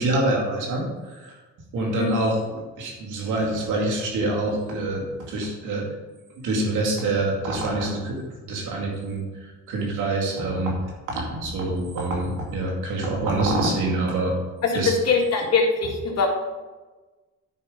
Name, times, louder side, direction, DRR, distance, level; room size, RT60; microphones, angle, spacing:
voice 1, 0.0-1.3 1.7-6.0 6.4-10.8 11.1-14.3 14.7-14.9, right 2 dB, 85° right, -1 dB, 2.4 m, -26 dB
voice 2, 1.8-2.2 14.6-16.3, left 4 dB, 55° left, 0 dB, 1.9 m, -22 dB
9.5 x 5.2 x 5.1 m, 1.2 s
cardioid pair, 90°, 30 cm